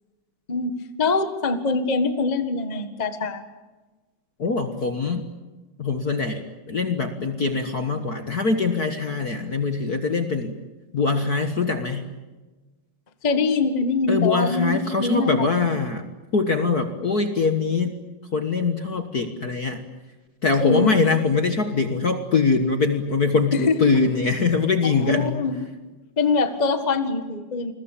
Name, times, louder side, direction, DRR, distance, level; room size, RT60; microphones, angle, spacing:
voice 1, 0.5-3.4 13.2-15.8 20.6-20.9 23.5-23.8 24.9-25.7 26.2-27.7, left 4 dB, 30° left, 9 dB, 0.8 m, -24 dB
voice 2, 4.4-5.3 5.8-10.5 10.9-12.1 14.1-16.0 16.3-18.0 18.3-19.8 20.4-25.4, left 4 dB, 45° left, 7 dB, 1.2 m, -23 dB
28.5 x 21.5 x 8.5 m, 1.2 s
omnidirectional pair, 3.6 m